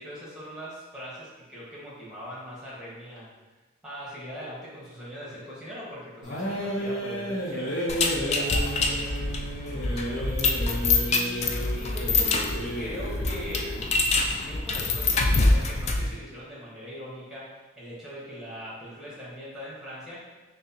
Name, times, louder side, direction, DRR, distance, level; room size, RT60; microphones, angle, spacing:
voice 1, 0.0-3.3 3.8-12.4 12.7-13.7 14.5-17.5 17.8-20.2, equal, 5° right, -7 dB, 1.2 m, -41 dB
sound 1, 6.2-13.9, equal, 65° left, 0.8 m, -32 dB
sound 2, 7.9-16.1, left 3 dB, 35° left, 0.3 m, -25 dB
6.0 x 2.1 x 2.8 m, 1.2 s
head